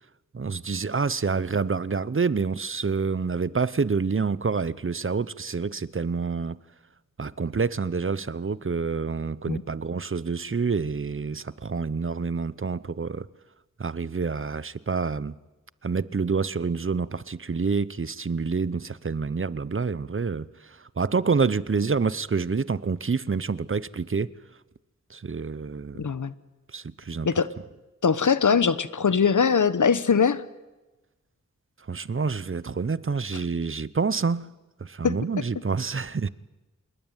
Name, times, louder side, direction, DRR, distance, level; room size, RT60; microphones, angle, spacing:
voice 1, 0.3-6.6 7.2-13.3 13.8-15.3 15.8-24.3 25.1-26.1 26.7-27.3 31.9-34.5 34.8-36.3, right 5 dB, 45° right, 0.8 m, -27 dB
voice 2, 26.0-26.3 27.2-27.5 28.0-30.4 35.0-35.2, left 6 dB, 80° left, 1.1 m, -21 dB
27.5 x 20.5 x 9.1 m
wide cardioid pair, 65°, 30 cm